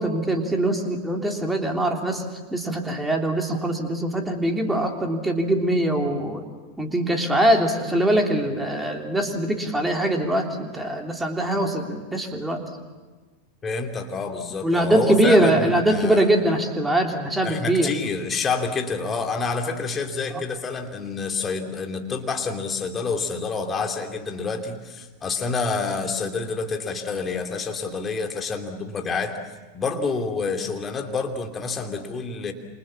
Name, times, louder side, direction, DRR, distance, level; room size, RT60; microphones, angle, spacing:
voice 1, 0.0-2.2 2.5-6.4 6.8-12.6 14.6-17.9, right 1 dB, 5° right, 3 dB, 3.2 m, -22 dB
voice 2, 13.6-16.3 17.4-29.4 29.7-32.5, left 4 dB, 20° left, 4 dB, 2.8 m, -28 dB
28.0 x 27.5 x 7.4 m, 1.3 s
figure-of-eight pair, 90°, 0 cm